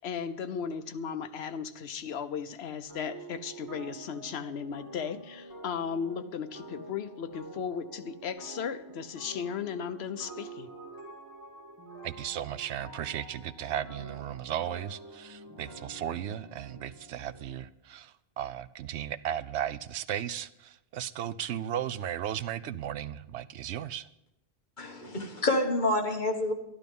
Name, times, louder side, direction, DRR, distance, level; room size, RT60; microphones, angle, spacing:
voice 1, 0.0-10.7, left 7 dB, 75° left, 1.0 m, -36 dB
sound 1, 2.9-17.5, right 2 dB, 20° right, 2.5 m, -47 dB
voice 2, 12.0-24.1, right 10 dB, 85° right, 0.9 m, -35 dB
voice 3, 24.8-26.5, left 2 dB, 45° left, 1.7 m, -28 dB
12.0 x 11.5 x 5.3 m
omnidirectional pair, 1.1 m